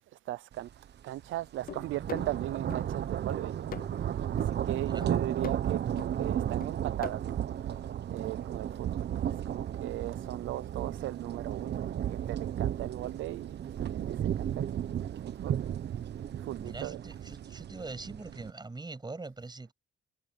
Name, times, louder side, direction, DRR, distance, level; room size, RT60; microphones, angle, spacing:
voice 1, 0.3-0.7 1.0-7.8 8.1-16.0 16.3-17.0, right 15 dB, 80° right, 0.6 m, -39 dB
sound 1, 0.7-0.9 1.2-18.5, right 10 dB, 60° right, 1.2 m, -34 dB
sound 2, 1.7-2.9 3.3-4.0 4.4-4.6 5.0-5.7 6.0-6.1 6.6-7.1, left 9 dB, 45° left, 0.6 m, -43 dB
voice 2, 4.7-5.1 16.6-19.7, right 3 dB, 20° right, 7.8 m, -43 dB
cardioid pair, 90°, 20 cm